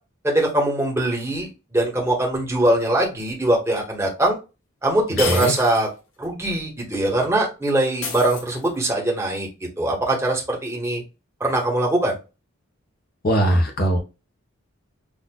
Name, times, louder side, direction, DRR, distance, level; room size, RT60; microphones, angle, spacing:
voice 1, 0.2-4.4 4.8-5.9 6.2-9.5 9.8-11.0 11.4-12.2, right 1 dB, 15° right, 1.2 m, -22 dB
sound 1, 3.8-3.9 5.2-5.9 6.2-6.3 8.0-8.9, left 4 dB, 65° left, 1.4 m, -30 dB
voice 2, 13.2-14.0, right 1 dB, 45° left, 0.9 m, -19 dB
6.4 x 2.4 x 2.2 m
head